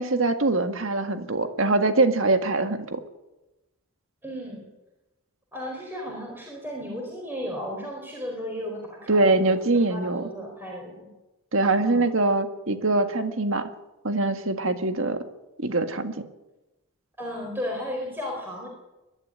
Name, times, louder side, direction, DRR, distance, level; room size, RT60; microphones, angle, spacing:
voice 1, 0.0-3.0 9.1-10.2 11.5-13.7 14.0-15.2 15.6-16.3, right 2 dB, 65° right, 7 dB, 1.8 m, -23 dB
voice 2, 4.2-4.7 5.5-11.0 11.8-12.0 17.2-18.7, equal, 10° right, -1 dB, 4.5 m, -34 dB
22.5 x 12.5 x 9.9 m, 1.0 s
head